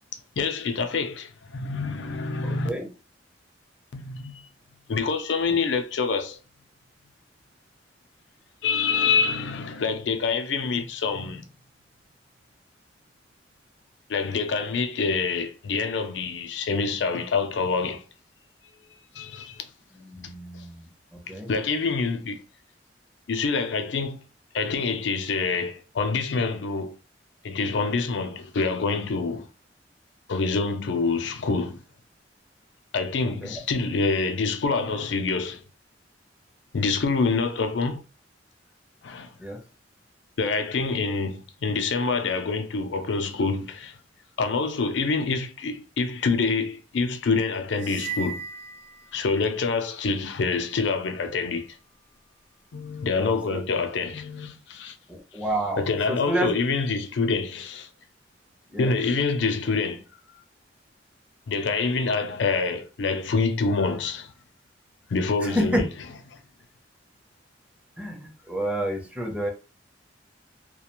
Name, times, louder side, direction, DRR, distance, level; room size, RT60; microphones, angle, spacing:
voice 1, 0.4-2.7 3.9-4.4 4.9-6.4 8.6-11.5 14.1-18.0 19.2-19.6 20.5-20.6 21.3-22.4 23.3-24.2 24.5-27.0 27.4-29.5 30.3-31.8 32.9-35.6 36.7-38.0 39.0-39.3 40.4-44.0 44.4-48.4 49.1-51.7 52.7-54.9 55.8-57.9 58.8-60.0 61.5-64.3 65.1-65.9, left 4 dB, 75° left, 0.5 m, -26 dB
voice 2, 2.4-2.9 20.0-20.9 21.3-21.5 33.4-33.6 39.4-39.6 53.2-53.6 55.1-56.5 58.7-58.9 65.4-65.8 68.0-69.5, equal, 5° right, 0.6 m, -29 dB
sound 1, 47.7-49.6, right 5 dB, 65° right, 0.4 m, -37 dB
2.4 x 2.2 x 2.9 m
head